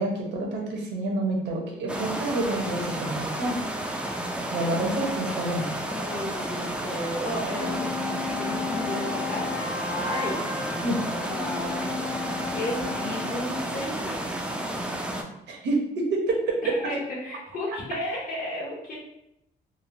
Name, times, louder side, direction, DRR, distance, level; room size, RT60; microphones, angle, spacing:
voice 1, 0.0-3.6 4.5-5.7 10.8-11.0 15.5-16.7, right 2 dB, 70° right, 0 dB, 0.7 m, -28 dB
sound 1, 1.9-15.2, right 1 dB, 5° right, 0.3 m, -32 dB
voice 2, 5.9-14.4 16.6-18.9, left 1 dB, 50° left, -5 dB, 1.0 m, -34 dB
sound 2, 7.3-13.5, left 6 dB, 80° left, 0.7 m, -34 dB
3.0 x 2.1 x 2.6 m, 0.79 s
cardioid pair, 100°, 18 cm